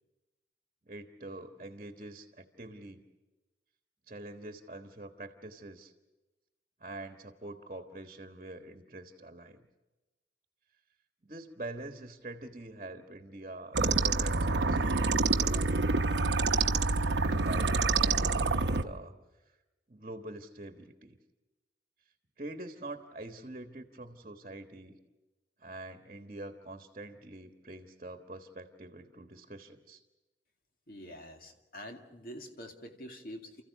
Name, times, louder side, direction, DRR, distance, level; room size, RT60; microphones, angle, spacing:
voice 1, 0.8-3.0 4.1-5.9 6.8-9.7 11.2-15.9 17.4-19.1 19.4-19.6 19.9-21.2 22.4-25.0 25.6-30.0, right 2 dB, 40° right, 6 dB, 1.3 m, -45 dB
sound 1, 13.7-18.8, right 3 dB, 85° right, 0.9 m, -27 dB
voice 2, 30.9-33.6, equal, 55° left, 4 dB, 2.3 m, -46 dB
29.5 x 14.5 x 8.2 m, 1.1 s
head